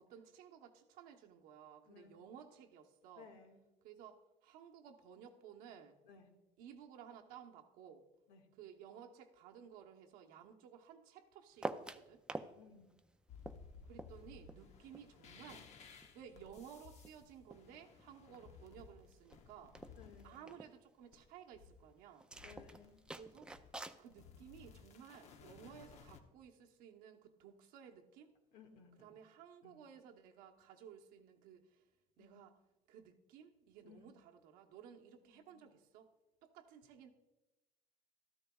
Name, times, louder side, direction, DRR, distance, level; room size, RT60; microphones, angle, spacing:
voice 1, 0.0-3.3 3.8-6.0 6.6-8.1 8.5-12.2 13.8-15.7 16.1-19.8 20.2-22.3 23.1-23.5 24.0-28.3 29.0-31.8 32.2-32.6 32.9-36.1 36.4-37.1, right 8 dB, 85° right, 3 dB, 1.0 m, -56 dB
voice 2, 1.9-2.2 3.2-3.6 6.0-6.3 8.3-8.4 12.5-12.9 18.3-18.4 20.0-20.4 22.4-23.1 25.6-25.7 28.5-29.1 29.6-29.8 32.2-32.4 33.8-34.1 35.3-35.8, left 6 dB, 90° left, 3 dB, 1.7 m, -60 dB
sound 1, 11.6-12.5 12.8-15.6 16.0-17.7 18.0-18.5 18.8-18.9 19.1-19.4 19.7-20.7 22.2-24.0, right 2 dB, 5° right, 0.4 m, -47 dB
sound 2, 13.3-20.3 21.1-21.9 22.3-26.2, left 5 dB, 50° left, 0.9 m, -59 dB
13.0 x 13.0 x 2.3 m, 1.0 s
cardioid pair, 135°, 14 cm